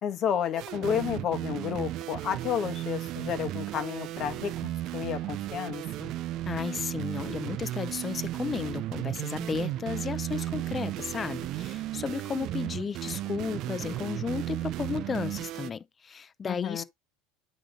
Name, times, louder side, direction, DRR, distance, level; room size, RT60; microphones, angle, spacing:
voice 1, 0.0-6.1 16.4-16.8, left 8 dB, 40° left, 1.3 m, -31 dB
sound 1, 0.6-15.7, right 14 dB, 50° right, 0.4 m, -35 dB
voice 2, 6.5-16.8, left 6 dB, 25° left, 0.6 m, -34 dB
8.8 x 3.1 x 5.2 m
supercardioid pair, 130°, 0 cm